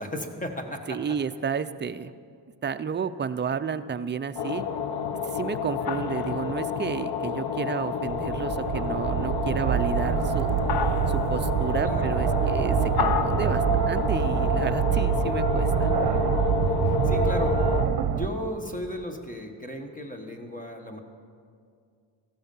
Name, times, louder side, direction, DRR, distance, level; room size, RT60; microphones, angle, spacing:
voice 1, 0.0-1.0 8.6-8.7 11.8-12.1 16.8-21.0, equal, 20° left, 4 dB, 1.4 m, -36 dB
voice 2, 0.9-2.1 2.6-4.6 5.3-10.6 11.1-15.9, right 6 dB, 25° right, 10 dB, 0.4 m, -31 dB
sound 1, 4.4-17.9, left 6 dB, 60° left, 0.8 m, -29 dB
sound 2, 7.9-18.3, right 9 dB, 60° right, 0.8 m, -26 dB
15.0 x 13.0 x 5.4 m, 2.2 s
cardioid pair, 125°, 43 cm